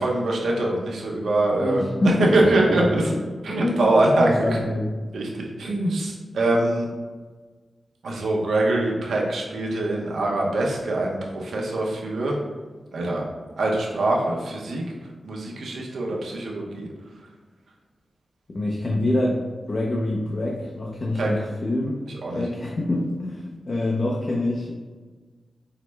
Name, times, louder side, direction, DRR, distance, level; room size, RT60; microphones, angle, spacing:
voice 1, 0.0-3.1 3.4-4.5 5.1-6.9 8.0-12.4 12.9-13.2 13.6-14.8 15.2-16.9 21.2-21.3 22.2-22.4, right 2 dB, 85° right, -2 dB, 0.7 m, -23 dB
voice 2, 1.6-2.4 2.6-3.2 3.5-5.0 18.5-22.0 22.3-24.7, left 1 dB, 45° left, -2 dB, 0.5 m, -26 dB
4.7 x 2.1 x 3.3 m, 1.4 s
wide cardioid pair, 90°, 0 cm